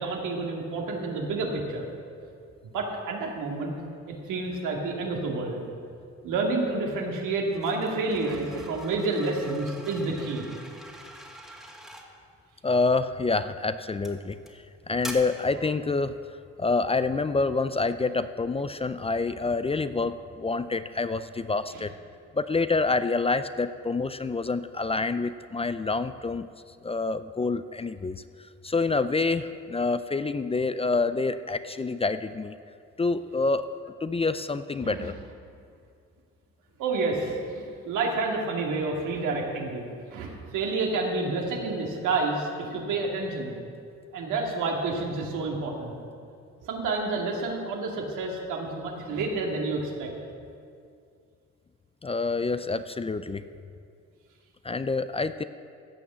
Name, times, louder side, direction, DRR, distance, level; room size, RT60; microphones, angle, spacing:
voice 1, 0.0-1.9 2.6-3.7 4.1-5.6 6.2-10.4 21.7-21.8 34.8-35.1 36.8-43.6 44.1-45.9 46.6-50.1, right 3 dB, 90° right, -1 dB, 2.3 m, -29 dB
sound 1, 7.5-12.1 13.0-13.3 14.0-14.5 15.0-15.1, equal, ahead, 1.9 m, -44 dB
voice 2, 12.6-16.1 16.6-21.9 22.3-26.5 26.8-28.2 28.6-32.5 33.0-33.7 34.0-35.1 52.0-53.5 54.6-55.4, left 3 dB, 20° left, 12 dB, 0.4 m, -27 dB
15.5 x 6.0 x 7.9 m, 2.3 s
cardioid pair, 90°, 30 cm